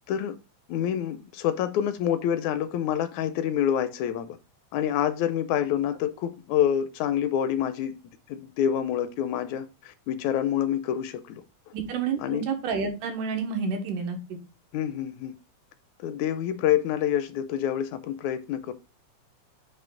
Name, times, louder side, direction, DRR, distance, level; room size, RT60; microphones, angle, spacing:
voice 1, 0.7-4.4 4.7-8.0 8.3-11.4 12.2-12.5 14.7-15.3 16.0-18.7, left 10 dB, 80° left, 1.8 m, -27 dB
voice 2, 11.7-14.4, right 5 dB, 90° right, 2.7 m, -29 dB
9.0 x 3.1 x 3.8 m
omnidirectional pair, 3.6 m